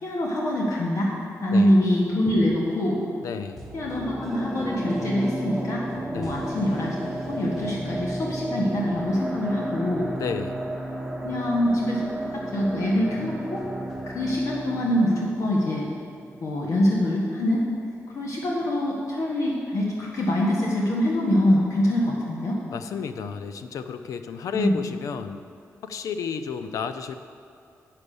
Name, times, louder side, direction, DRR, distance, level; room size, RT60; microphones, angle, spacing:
voice 1, 0.0-1.1 1.4-3.0 3.7-5.8 6.1-7.0 7.3-10.1 11.2-13.6 14.1-15.9 16.4-17.7 18.1-22.6 24.5-24.8, left 1 dB, 65° left, -3 dB, 1.5 m, -24 dB
voice 2, 3.2-3.6 6.1-6.4 10.1-10.6 22.7-25.5 25.8-27.1, left 6 dB, 85° left, 10 dB, 0.5 m, -32 dB
sound 1, 3.6-16.7 17.0-17.1, right 1 dB, ahead, 1.4 m, -33 dB
8.3 x 6.2 x 6.9 m, 2.5 s
cardioid pair, 95°, 6 cm